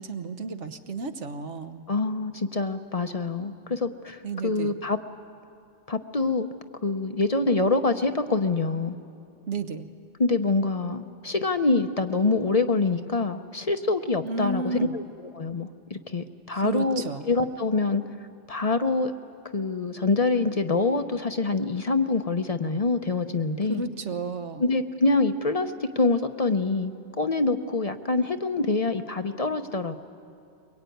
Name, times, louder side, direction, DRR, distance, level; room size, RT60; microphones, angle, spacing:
voice 1, 0.0-1.9 4.2-4.8 9.5-9.9 14.2-14.9 16.5-17.2 23.7-24.6, right 4 dB, 70° right, 8 dB, 1.4 m, -32 dB
voice 2, 1.9-5.0 5.9-6.5 6.8-9.0 10.2-18.0 18.5-19.1 19.5-23.8 24.6-30.0, left 3 dB, 35° left, 8 dB, 0.8 m, -25 dB
23.0 x 22.0 x 9.3 m, 2.6 s
omnidirectional pair, 1.3 m